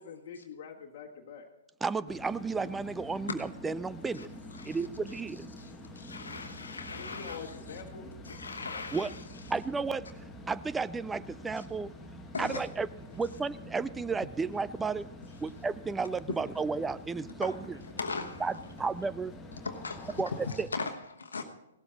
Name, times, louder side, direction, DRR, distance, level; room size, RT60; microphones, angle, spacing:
voice 1, 0.0-1.4 6.9-8.1, left 6 dB, 40° left, -2 dB, 1.5 m, -45 dB
voice 2, 1.8-4.3 4.7-5.5 8.9-9.1 9.5-10.0 10.5-11.9 12.4-12.9 13.2-15.1 15.4-17.6 18.4-18.5 18.8-19.3 20.2-20.3 20.6-20.7, right 4 dB, 10° right, 16 dB, 0.4 m, -32 dB
sound 1, 2.1-20.7, left 1 dB, 10° left, 1.5 m, -47 dB
voice 3, 4.5-4.8 5.1-5.2 5.6-7.8 8.2-9.2 11.6-11.7 12.3-12.7 16.3-16.4 17.4-17.5 18.0-18.6 19.6-21.4, left 4 dB, 70° left, 5 dB, 1.1 m, -39 dB
16.5 x 12.5 x 3.9 m, 0.89 s
figure-of-eight pair, 115°, 0 cm